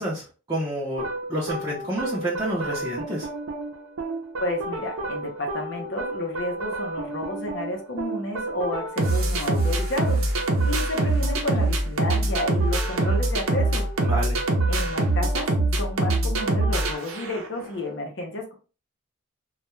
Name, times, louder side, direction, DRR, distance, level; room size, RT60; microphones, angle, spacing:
voice 1, 0.0-3.3 14.0-14.4, right 1 dB, 20° right, -7 dB, 0.5 m, -29 dB
sound 1, 1.0-17.6, right 2 dB, 80° right, 0.6 m, -25 dB
voice 2, 4.4-13.9 14.7-15.5 15.8-18.5, left 1 dB, 60° left, 2 dB, 0.7 m, -31 dB
2.3 x 2.1 x 3.0 m, 0.35 s
head